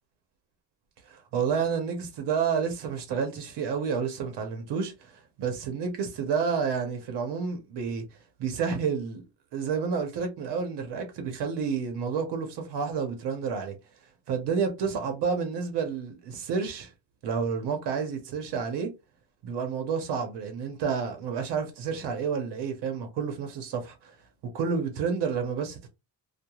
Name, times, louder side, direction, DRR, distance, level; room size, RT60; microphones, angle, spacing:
voice 1, 1.1-8.0 8.4-9.2 9.5-13.7 14.3-16.9 17.2-18.9 19.4-24.1 24.5-25.9, right 6 dB, 90° right, 0.8 m, -30 dB
2.3 x 2.2 x 2.9 m
cardioid pair, 170°, 40 cm